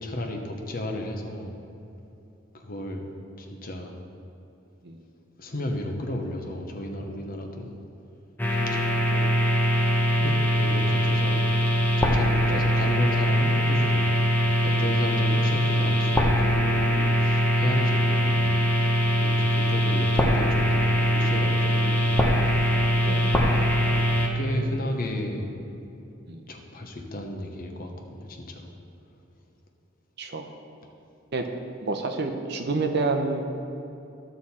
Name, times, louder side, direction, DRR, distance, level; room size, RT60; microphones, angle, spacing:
voice 1, 0.0-1.6 2.5-3.1 3.4-4.0 5.4-7.8 8.6-9.2 10.2-11.4 12.0-18.7 19.2-22.1 22.5-22.8 23.7-24.0 24.3-25.8 26.5-28.7, left 1 dB, 45° left, 3 dB, 1.0 m, -33 dB
sound 1, 8.4-24.3, equal, 10° left, 0.9 m, -22 dB
voice 2, 31.8-33.4, right 3 dB, 55° right, 5 dB, 0.7 m, -29 dB
13.0 x 6.3 x 4.3 m, 2.8 s
head